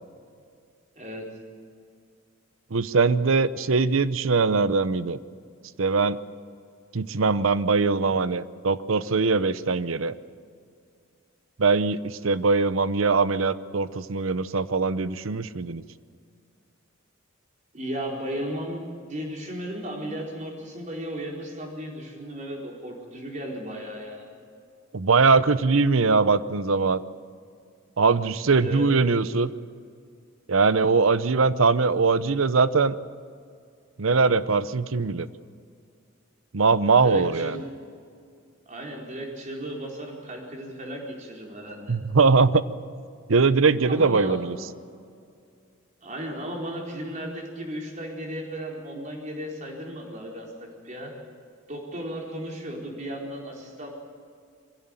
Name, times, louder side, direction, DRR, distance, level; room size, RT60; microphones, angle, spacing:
voice 1, 0.9-1.2 17.7-24.3 28.6-28.8 37.0-37.6 38.7-42.0 43.9-44.4 46.0-51.1 51.7-53.9, equal, 35° right, 0 dB, 4.4 m, -35 dB
voice 2, 2.7-5.2 5.8-6.2 6.9-10.1 11.6-15.8 24.9-27.0 28.0-29.5 30.5-32.9 34.0-35.3 36.5-37.6 41.9-42.6 43.3-44.6, right 4 dB, 80° right, 15 dB, 0.8 m, -21 dB
22.5 x 16.5 x 9.1 m, 2.3 s
head